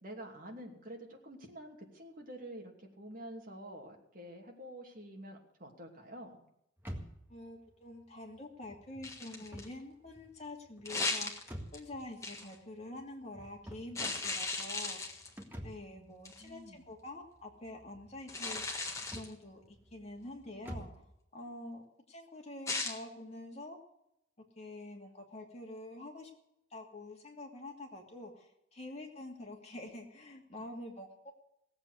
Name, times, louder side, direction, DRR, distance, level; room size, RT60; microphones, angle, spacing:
voice 1, 0.0-6.5 15.9-16.8, right 1 dB, 45° right, 1 dB, 2.8 m, -48 dB
sound 1, 6.8-21.1, equal, 10° right, 1.8 m, -51 dB
voice 2, 7.3-11.3 11.7-15.0 15.6-18.6 19.1-20.9 21.3-21.8 22.1-23.8 24.6-26.3 26.7-31.3, left 1 dB, 30° left, 0 dB, 2.6 m, -47 dB
sound 2, 9.0-9.7 10.9-11.8 12.2-12.6 14.0-15.4 16.3-16.5 18.3-19.3 22.7-23.0, left 3 dB, 15° left, 1.6 m, -37 dB
17.5 x 8.0 x 8.1 m, 0.78 s
head